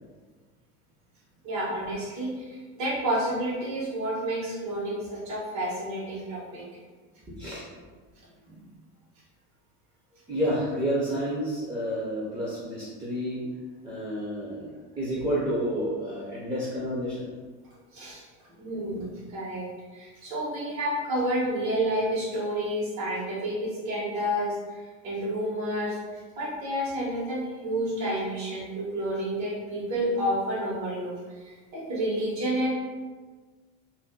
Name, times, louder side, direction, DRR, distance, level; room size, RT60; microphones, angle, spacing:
voice 1, 1.4-6.6 8.4-8.6 17.9-18.2 18.6-31.1 31.4-32.7, right 1 dB, 60° right, -6 dB, 1.3 m, -30 dB
voice 2, 7.3-7.6 10.3-13.4 13.8-17.3, equal, 15° right, -6 dB, 0.6 m, -30 dB
2.6 x 2.2 x 3.5 m, 1.4 s
cardioid pair, 135°, 33 cm